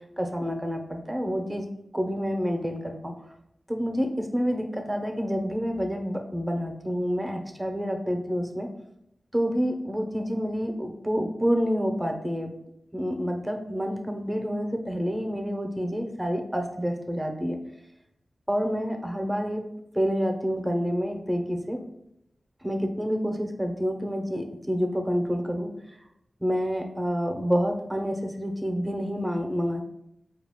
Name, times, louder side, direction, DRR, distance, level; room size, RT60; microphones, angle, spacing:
voice 1, 0.2-1.6 1.9-3.1 3.7-8.7 9.3-12.5 12.9-17.6 18.5-19.7 19.9-21.8 22.6-25.7 26.4-29.8, equal, 10° right, 4 dB, 0.8 m, -28 dB
4.7 x 2.4 x 3.6 m, 0.78 s
cardioid pair, 50°, 0 cm